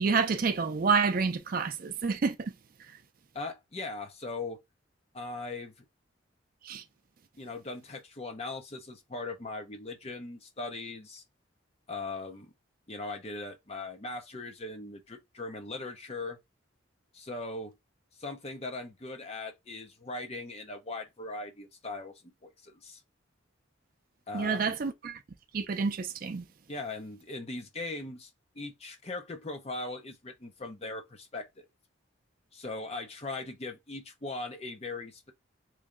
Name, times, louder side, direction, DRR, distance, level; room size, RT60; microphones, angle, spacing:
voice 1, 0.0-2.5 6.6-6.8 24.3-25.2 25.5-26.5, right 5 dB, 45° right, 0.4 m, -28 dB
voice 2, 3.3-4.6 5.1-5.7 7.4-11.2 11.9-12.5 12.9-16.4 17.1-17.8 18.2-23.0 24.3-24.8 26.7-28.3 28.5-31.7 32.5-35.3, left 2 dB, 30° left, 0.6 m, -39 dB
3.2 x 2.6 x 3.7 m
head